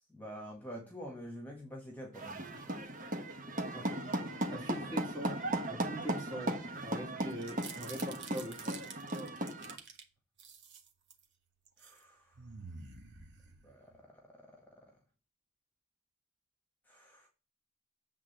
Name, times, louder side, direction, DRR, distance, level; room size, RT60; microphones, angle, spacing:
voice 1, 0.1-2.4 11.8-12.2 13.6-14.6 16.9-17.3, equal, 10° left, 0 dB, 1.7 m, -47 dB
sound 1, 2.1-9.8, right 1 dB, 40° right, 1.2 m, -37 dB
voice 2, 4.5-5.4 5.7-8.8, right 1 dB, 20° right, 0 dB, 2.5 m, -42 dB
sound 2, 7.3-10.0 10.4-11.2 11.7-12.0 12.3-14.0, right 5 dB, 55° right, 1.4 m, -49 dB
8.2 x 3.7 x 6.8 m, 0.33 s
head